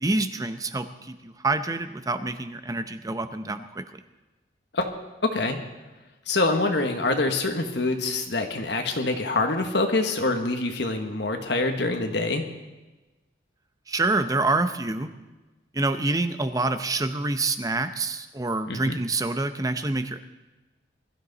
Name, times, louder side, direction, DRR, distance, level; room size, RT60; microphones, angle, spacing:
voice 1, 0.0-3.8 13.9-15.1 15.7-20.2, right 2 dB, 20° right, 10 dB, 0.7 m, -27 dB
voice 2, 5.3-5.6 6.3-12.4 18.7-19.0, left 2 dB, 60° left, 4 dB, 1.3 m, -25 dB
21.0 x 13.0 x 4.1 m, 1.1 s
head